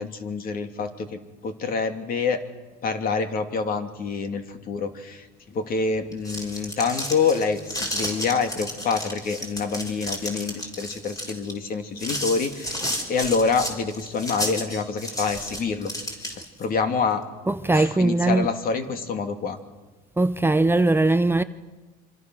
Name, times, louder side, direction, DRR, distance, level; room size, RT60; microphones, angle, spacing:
voice 1, 0.0-2.4 2.8-15.9 16.6-17.2 17.7-19.6, left 5 dB, 50° left, 2.8 m, -27 dB
sound 1, 6.0-16.6, equal, 20° left, 5.7 m, -32 dB
voice 2, 17.5-18.5 20.2-21.4, right 2 dB, 10° right, 0.7 m, -20 dB
26.0 x 25.5 x 6.4 m
cardioid pair, 110°, 19 cm